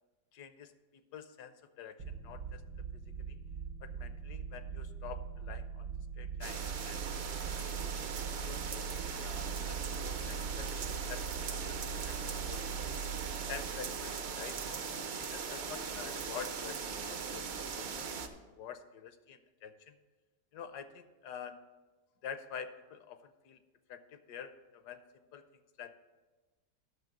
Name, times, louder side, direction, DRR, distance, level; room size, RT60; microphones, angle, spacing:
voice 1, 0.3-2.6 3.2-3.4 3.8-5.9 6.2-7.9 8.5-13.0 13.5-14.6 15.2-18.1 18.5-20.0 20.5-21.6 22.2-23.6 23.9-25.4 25.8-25.9, left 8 dB, 70° left, 10 dB, 1.1 m, -48 dB
sound 1, 2.0-15.3, right 6 dB, 85° right, 1.7 m, -42 dB
sound 2, 6.4-18.3, right 5 dB, 65° right, 0.6 m, -40 dB
10.5 x 6.4 x 5.9 m, 1.2 s
omnidirectional pair, 2.0 m